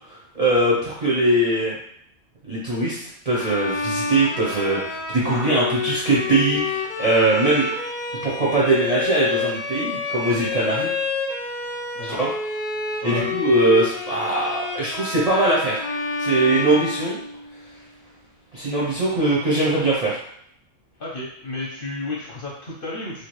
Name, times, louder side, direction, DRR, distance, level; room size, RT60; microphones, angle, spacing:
voice 1, 0.1-1.7 2.4-7.7 8.2-10.9 12.0-12.3 13.0-15.8 16.2-17.2 18.5-20.2, right 2 dB, 40° right, -7 dB, 0.6 m, -21 dB
Bowed string instrument, 3.3-17.6, left 4 dB, 90° left, 0.4 m, -28 dB
voice 2, 12.0-12.3 13.0-13.3 21.0-23.3, left 2 dB, 50° left, -5 dB, 0.9 m, -32 dB
3.1 x 2.4 x 3.0 m, 0.69 s
omnidirectional pair, 1.4 m